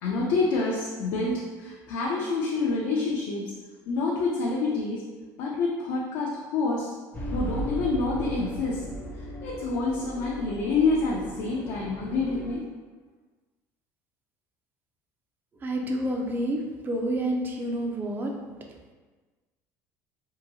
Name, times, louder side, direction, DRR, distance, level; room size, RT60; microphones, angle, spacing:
voice 1, 0.0-3.6 3.9-5.0 5.4-6.9 7.3-8.8 9.4-12.6, left 3 dB, 75° left, -4 dB, 0.5 m, -27 dB
sound 1, 7.1-12.6, equal, 25° left, 0.6 m, -36 dB
voice 2, 15.6-18.3, right 1 dB, 25° right, 2 dB, 0.4 m, -29 dB
2.8 x 2.6 x 2.6 m, 1.3 s
cardioid pair, 115°, 7 cm